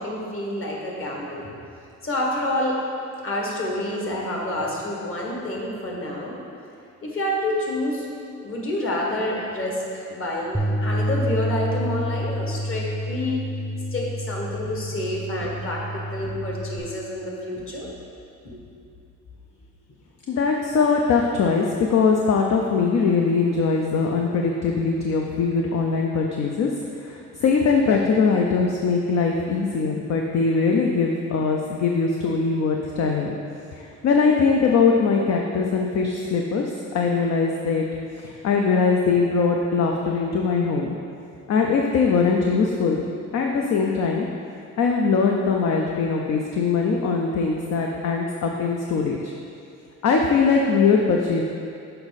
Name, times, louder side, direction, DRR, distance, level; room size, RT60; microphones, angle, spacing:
voice 1, 0.0-1.5 2.0-2.8 3.2-6.4 7.0-8.1 8.4-13.4 13.9-17.9 18.5-18.6, left 1 dB, 45° left, -2 dB, 1.7 m, -28 dB
Bass guitar, 10.5-16.8, equal, 5° left, 0.8 m, -28 dB
voice 2, 20.3-26.7 27.0-33.3 33.7-37.9 38.2-40.9 41.5-43.0 43.3-44.3 44.8-49.3 50.0-51.4, left 5 dB, 60° left, 1 dB, 0.6 m, -21 dB
6.7 x 5.3 x 4.1 m, 2.5 s
cardioid pair, 90°, 30 cm